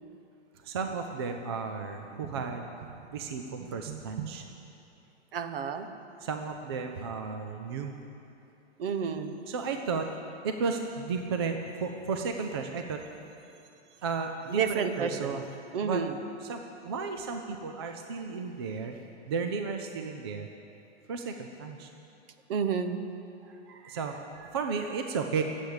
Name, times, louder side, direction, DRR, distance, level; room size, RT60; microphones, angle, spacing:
voice 1, 0.6-2.7 3.1-4.4 6.2-7.9 9.5-10.1 10.4-13.1 14.0-15.4 15.8-16.0 16.4-19.0 19.3-20.5 21.1-21.9 23.4-25.4, right 5 dB, 25° right, 4 dB, 0.4 m, -34 dB
voice 2, 5.3-5.9 8.8-9.3 14.6-15.3 15.7-16.1 22.5-23.0, right 7 dB, 55° right, 8 dB, 1.1 m, -30 dB
13.5 x 8.0 x 10.0 m, 2.7 s
hypercardioid pair, 170°, 34 cm